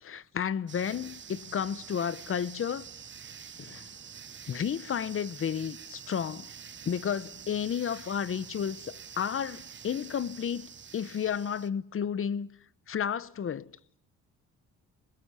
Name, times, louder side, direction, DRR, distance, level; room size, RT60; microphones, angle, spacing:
voice 1, 0.0-2.8 3.6-3.9 4.5-6.5 6.9-12.5 12.9-13.7, left 8 dB, 45° left, 1.0 m, -32 dB
sound 1, 0.7-11.7, right 7 dB, 40° right, 1.0 m, -47 dB
23.0 x 20.5 x 9.8 m
cardioid pair, 90°, 30 cm